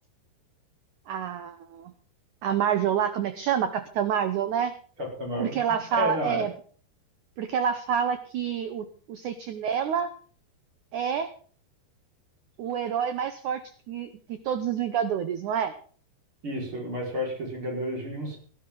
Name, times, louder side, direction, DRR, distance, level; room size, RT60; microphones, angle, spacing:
voice 1, 1.1-1.9 2.4-4.7 5.4-6.5 7.4-10.1 10.9-11.3 12.6-13.6 13.9-15.7, right 8 dB, 85° right, 10 dB, 1.7 m, -28 dB
voice 2, 5.0-6.5 16.4-18.4, left 1 dB, 30° right, -1 dB, 5.4 m, -32 dB
17.0 x 12.5 x 3.8 m, 0.43 s
omnidirectional pair, 4.7 m